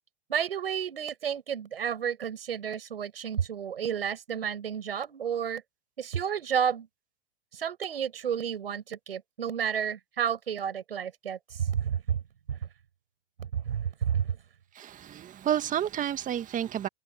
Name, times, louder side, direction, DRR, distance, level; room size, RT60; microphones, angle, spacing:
voice 1, 0.3-5.6 6.0-6.9 7.5-12.2 12.5-12.6 13.4-14.4, right 8 dB, 85° right, 7.3 m, -31 dB
voice 2, 14.7-16.9, right 10 dB, 25° right, 1.8 m, -30 dB
hypercardioid pair, 105°, 29 cm